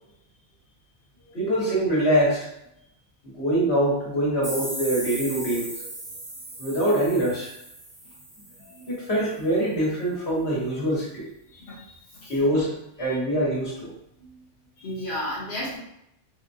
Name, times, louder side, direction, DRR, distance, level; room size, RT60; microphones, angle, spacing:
voice 1, 1.3-2.5 3.2-5.9 6.6-7.5 8.7-11.3 12.2-13.9, right 1 dB, 70° left, -7 dB, 1.6 m, -24 dB
sound 1, 4.4-9.1, right 1 dB, 65° right, 1.4 m, -37 dB
voice 2, 11.5-12.3 13.1-13.2 14.8-15.8, left 1 dB, 55° left, -8 dB, 1.0 m, -33 dB
3.8 x 2.2 x 2.7 m, 0.80 s
omnidirectional pair, 1.1 m